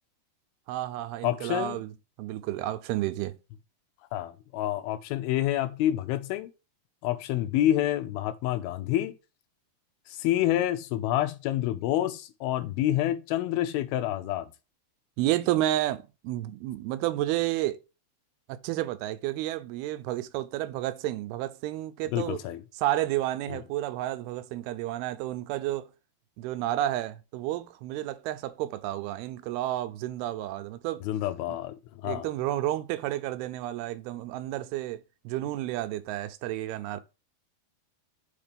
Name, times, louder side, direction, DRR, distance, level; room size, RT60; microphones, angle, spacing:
voice 1, 0.7-1.9 2.2-3.3 15.2-17.8 18.6-22.4 22.8-25.9 26.4-31.0 32.0-37.0, right 14 dB, 85° right, 2.5 m, -31 dB
voice 2, 1.2-1.8 4.1-6.5 7.0-9.1 10.1-14.5 22.1-22.6 31.0-32.3, left 13 dB, 80° left, 2.4 m, -28 dB
5.9 x 4.3 x 5.0 m
omnidirectional pair, 4.5 m